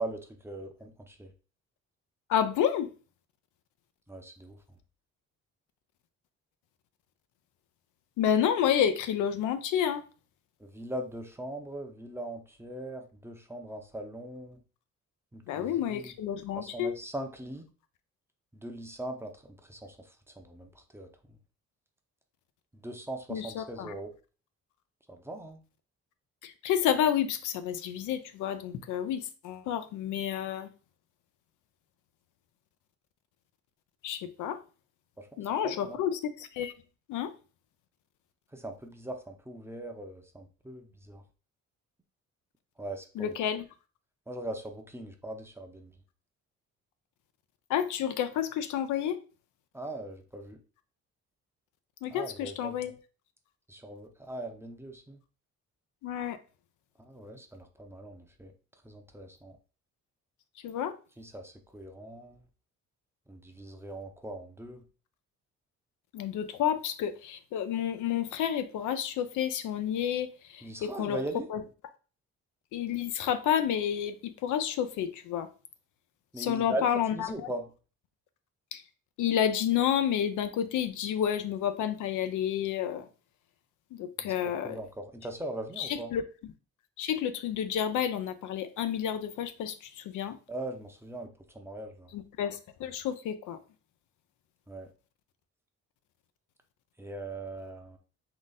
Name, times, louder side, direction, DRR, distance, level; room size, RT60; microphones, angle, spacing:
voice 1, 0.0-1.3 4.1-4.6 10.6-14.6 15.3-16.1 16.6-17.6 18.6-19.3 19.6-20.0 20.4-21.4 22.7-24.1 25.1-25.6 35.2-35.3 35.6-36.0 38.5-41.2 42.8-43.3 44.3-45.9 49.7-50.6 52.1-52.7 53.7-55.2 57.0-58.5 58.8-59.6 61.2-62.4 63.3-64.8 70.6-71.5 76.3-77.7 84.2-84.3 84.6-86.1 90.5-92.1 94.7-94.9 97.0-98.0, right 1 dB, 10° right, 0.7 m, -40 dB
voice 2, 2.3-2.9 8.2-10.0 15.5-16.9 23.3-23.9 26.4-30.7 34.0-34.6 35.4-36.7 37.1-37.3 43.2-43.6 47.7-49.2 52.0-52.9 56.0-56.4 60.6-60.9 66.1-71.2 71.5-71.6 72.7-75.5 76.4-77.5 78.7-78.8 79.2-83.1 83.9-84.8 85.8-86.2 87.0-90.4 92.1-93.6, left 9 dB, 80° left, 0.5 m, -30 dB
3.9 x 2.4 x 4.0 m
cardioid pair, 90°, 30 cm